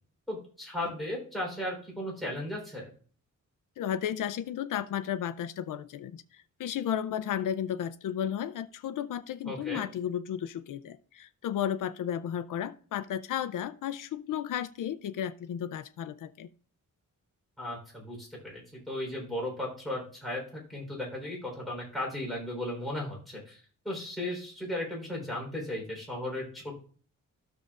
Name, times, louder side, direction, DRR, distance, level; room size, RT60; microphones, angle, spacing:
voice 1, 0.3-2.9 9.5-9.9 17.6-23.6 23.8-26.7, left 1 dB, ahead, -3 dB, 3.6 m, -36 dB
voice 2, 3.8-16.5, left 10 dB, 80° left, 13 dB, 0.5 m, -33 dB
12.5 x 6.6 x 2.4 m, 0.43 s
wide cardioid pair, 155°, 32 cm